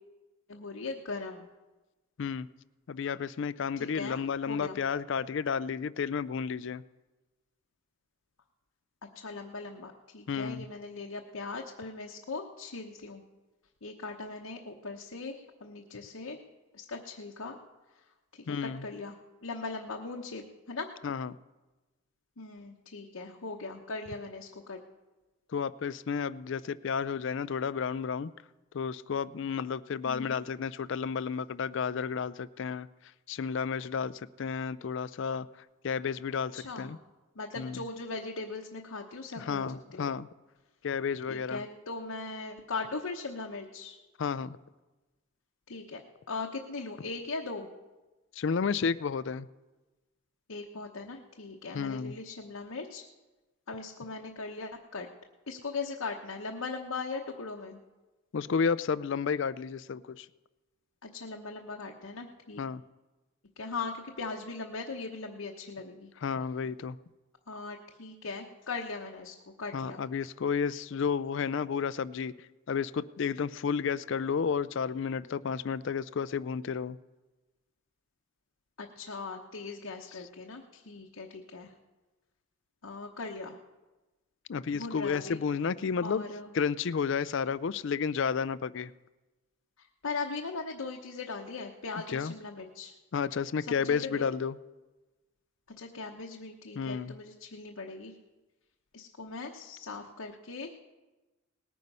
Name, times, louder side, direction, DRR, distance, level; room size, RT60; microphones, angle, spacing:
voice 1, 0.5-1.5 3.8-4.2 4.5-4.8 9.1-13.2 13.8-16.4 16.7-17.6 18.3-20.9 22.4-24.8 30.0-30.4 36.5-37.0 37.4-40.1 41.3-44.0 45.7-46.0 46.3-47.7 50.5-53.0 53.7-55.1 55.5-57.8 61.0-62.6 63.6-66.1 67.5-70.0 78.8-81.7 82.8-83.6 84.7-85.4 86.0-86.5 90.0-92.9 93.7-94.3 95.8-98.1 98.9-100.8, left 3 dB, 85° left, 0 dB, 1.0 m, -39 dB
voice 2, 2.9-6.8 10.3-10.7 18.5-18.9 21.0-21.4 25.5-28.3 28.7-32.9 33.3-35.5 35.8-37.0 37.6-37.8 39.4-40.3 40.8-41.6 44.2-44.6 48.4-49.5 51.7-52.1 58.3-60.3 62.6-62.8 66.2-67.0 69.7-72.3 72.7-77.0 84.5-86.2 86.5-88.9 92.1-92.3 93.1-94.6 96.8-97.1, left 6 dB, 60° left, 18 dB, 0.4 m, -32 dB
19.0 x 9.4 x 5.5 m, 1.1 s
head